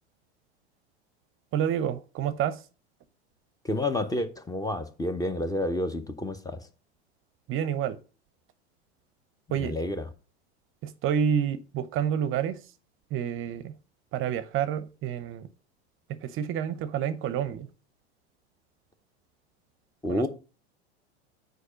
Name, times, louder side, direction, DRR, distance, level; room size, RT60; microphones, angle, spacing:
voice 1, 1.5-2.6 7.5-8.0 9.5-9.8 10.8-12.6 13.1-13.7 14.1-15.5 16.1-17.7 20.1-20.3, right 9 dB, 40° right, 0.7 m, -29 dB
voice 2, 3.6-6.6 9.6-10.1 20.0-20.3, left 1 dB, 10° left, 0.8 m, -29 dB
6.5 x 5.1 x 5.0 m
hypercardioid pair, 95°, 33 cm